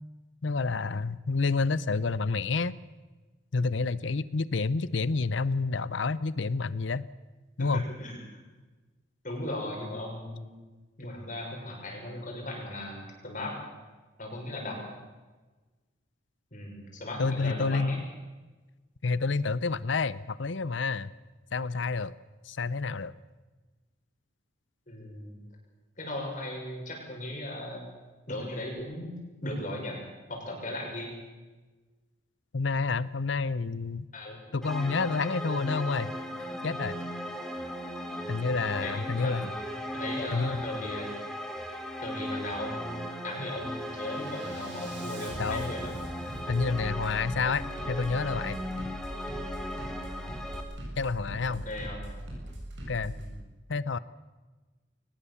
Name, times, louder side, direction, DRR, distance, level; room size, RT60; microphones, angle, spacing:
voice 1, 0.4-2.7 3.5-7.1 7.6-7.8 17.2-18.0 19.0-21.1 21.5-22.1 22.4-23.1 32.5-34.1 34.5-36.1 36.6-37.0 38.3-39.5 40.3-40.6 45.4-45.7 46.5-48.6 51.0-51.6 52.9-53.1 53.7-54.0, left 4 dB, 75° left, 17 dB, 0.7 m, -29 dB
voice 2, 7.6-8.4 9.2-10.5 11.0-13.5 14.2-14.9 16.5-18.0 24.9-25.4 26.0-27.9 28.3-30.0 30.3-31.1 34.1-34.4 38.3-39.5 39.9-41.1 42.0-43.0 43.2-46.0 51.2-52.1 53.0-53.3, left 1 dB, 45° left, 0 dB, 6.4 m, -37 dB
sound 1, 34.6-50.6, equal, 5° left, 2.6 m, -37 dB
Bass drum, 37.5-37.7 38.2-38.6 39.4-39.7 40.2-40.7 41.4-41.7 42.2-42.7 43.1-53.3, right 1 dB, 70° right, 7.3 m, -42 dB
22.5 x 19.5 x 7.1 m, 1.2 s
head